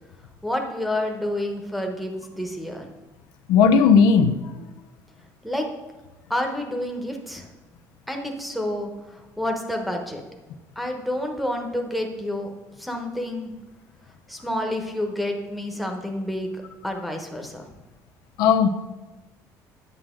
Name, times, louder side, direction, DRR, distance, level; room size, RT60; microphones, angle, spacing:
voice 1, 0.4-2.9 5.4-5.7 6.3-7.5 8.1-10.2 10.8-12.5 12.8-13.5 14.3-17.7, left 1 dB, ahead, 3 dB, 1.0 m, -29 dB
voice 2, 3.5-4.3 18.4-18.7, left 6 dB, 85° left, 7 dB, 0.7 m, -15 dB
9.2 x 7.4 x 3.7 m, 1.1 s
cardioid pair, 145°, 7 cm